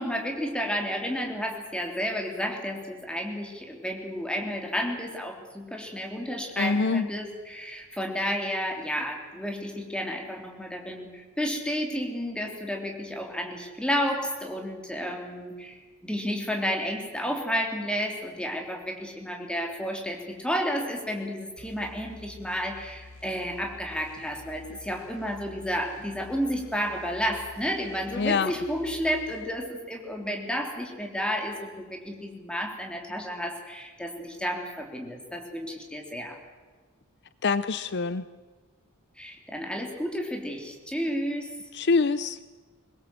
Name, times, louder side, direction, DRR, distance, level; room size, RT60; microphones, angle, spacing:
voice 1, 0.0-36.4 39.2-41.5, equal, 5° left, 2 dB, 3.3 m, -31 dB
voice 2, 6.6-7.1 28.2-28.5 37.4-38.2 41.7-42.4, left 4 dB, 55° left, 14 dB, 0.6 m, -25 dB
sound 1, 21.6-29.5, left 2 dB, 70° left, 6.7 m, -49 dB
22.5 x 20.0 x 7.7 m, 1.4 s
head